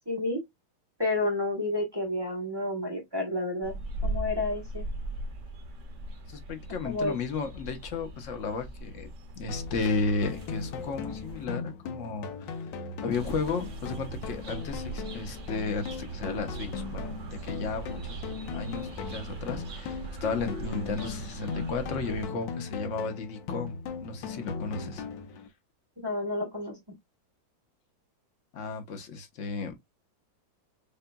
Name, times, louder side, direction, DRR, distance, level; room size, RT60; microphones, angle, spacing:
voice 1, 0.1-0.4 1.0-3.7 4.0-4.8 6.8-7.1 26.0-26.8, left 2 dB, 20° right, 0.7 m, -30 dB
sound 1, 3.6-11.4 13.1-22.3, right 2 dB, 50° right, 1.1 m, -40 dB
voice 2, 6.3-12.7 13.0-18.2 18.5-25.0 28.5-29.7, left 4 dB, 50° left, 1.0 m, -34 dB
sound 2, 9.5-25.5, left 5 dB, 75° left, 1.4 m, -38 dB
6.7 x 2.4 x 2.2 m
omnidirectional pair, 2.1 m